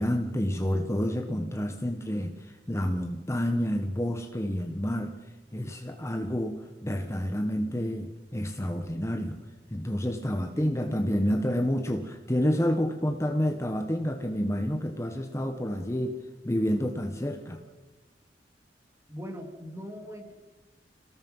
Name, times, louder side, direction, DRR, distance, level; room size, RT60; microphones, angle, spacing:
voice 1, 0.0-5.1 5.5-9.4 9.7-16.2 16.4-17.6, equal, 15° left, 5 dB, 1.3 m, -29 dB
voice 2, 10.6-11.0 19.1-20.3, equal, 15° right, 4 dB, 3.1 m, -40 dB
28.5 x 18.5 x 5.6 m, 1.2 s
head